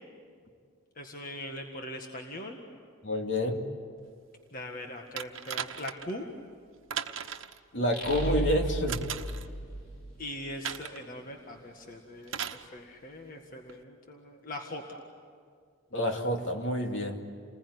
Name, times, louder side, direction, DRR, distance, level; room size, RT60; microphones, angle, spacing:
voice 1, 1.0-2.6 4.5-6.3 10.2-15.0, left 1 dB, 45° left, 3 dB, 1.8 m, -41 dB
voice 2, 3.0-3.6 7.7-9.0 15.9-17.2, left 1 dB, 65° left, 3 dB, 2.7 m, -28 dB
sound 1, 5.2-6.1 6.9-7.6 8.9-9.5 10.6-11.1 12.3-12.7 13.7-13.8, right 8 dB, 80° right, 1.1 m, -37 dB
sound 2, 8.0-10.6, right 1 dB, 85° left, 5.4 m, -34 dB
29.5 x 20.5 x 9.8 m, 2.1 s
head